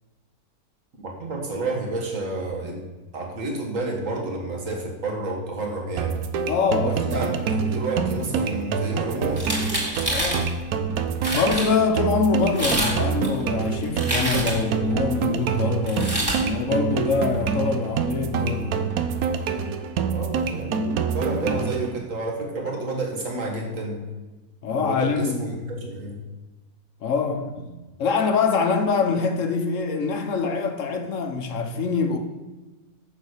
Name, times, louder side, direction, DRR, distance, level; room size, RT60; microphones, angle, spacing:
voice 1, 1.0-2.9 3.1-6.2 6.8-9.7 20.1-24.1 24.7-26.2, right 2 dB, 60° right, 2.0 m, -30 dB
sound 1, 6.0-22.0, right 5 dB, 75° right, 1.1 m, -26 dB
voice 2, 6.5-7.2 10.1-10.5 11.3-18.9 21.4-21.6 24.6-25.6 27.0-27.7 28.0-32.2, left 4 dB, 60° left, 1.1 m, -24 dB
sound 2, 9.4-10.4 11.0-11.1 11.2-11.7 12.4-13.0 13.2-14.7 15.9-16.4, right 1 dB, 15° right, 2.2 m, -26 dB
6.8 x 6.4 x 6.4 m
omnidirectional pair, 1.6 m